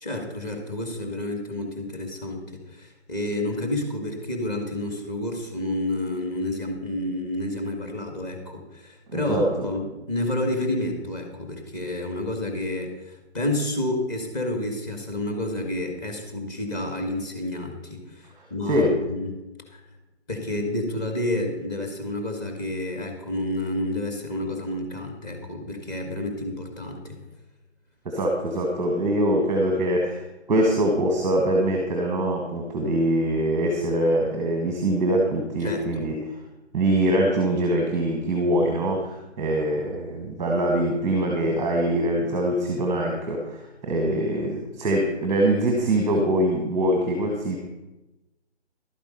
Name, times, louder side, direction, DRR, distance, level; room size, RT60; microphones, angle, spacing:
voice 1, 0.0-19.3 19.7-19.8 20.3-27.2 35.6-36.1, left 1 dB, 20° left, 2 dB, 1.7 m, -30 dB
voice 2, 9.1-9.5 18.7-19.0 28.0-36.3 36.7-47.6, right 1 dB, 10° right, 1 dB, 1.2 m, -23 dB
12.0 x 8.8 x 5.3 m, 0.98 s
figure-of-eight pair, 150°, 34 cm